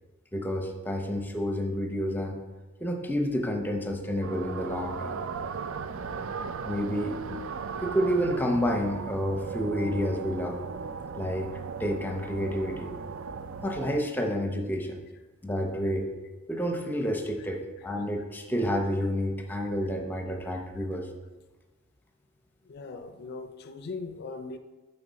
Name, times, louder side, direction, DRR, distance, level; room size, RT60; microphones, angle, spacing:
voice 1, 0.3-2.4 2.8-5.2 6.7-7.2 7.8-10.6 11.1-11.5 11.8-12.9 13.6-15.0 15.4-16.1 16.5-21.1, equal, 10° left, 3 dB, 0.7 m, -29 dB
sound 1, 4.2-14.0, right 5 dB, 65° right, 0.4 m, -37 dB
voice 2, 22.7-24.6, left 3 dB, 50° left, 9 dB, 0.4 m, -39 dB
7.3 x 5.8 x 4.1 m, 1.2 s
head